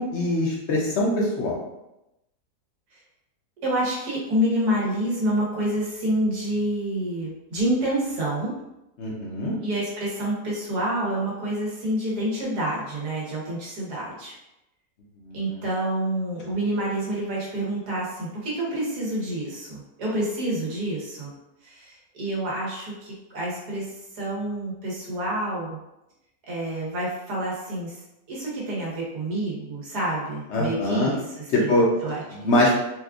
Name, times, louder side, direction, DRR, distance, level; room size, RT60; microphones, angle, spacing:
voice 1, 0.0-1.6 9.0-9.5 15.3-15.6 30.5-31.1 31.5-31.9 32.4-32.7, left 1 dB, 60° left, -3 dB, 0.7 m, -23 dB
voice 2, 3.6-8.5 9.6-14.4 15.3-21.3 21.6-25.8 26.4-28.0 28.3-31.7 32.0-32.2, right 1 dB, 75° right, -5 dB, 1.6 m, -28 dB
4.2 x 2.4 x 2.3 m, 0.91 s
omnidirectional pair, 1.7 m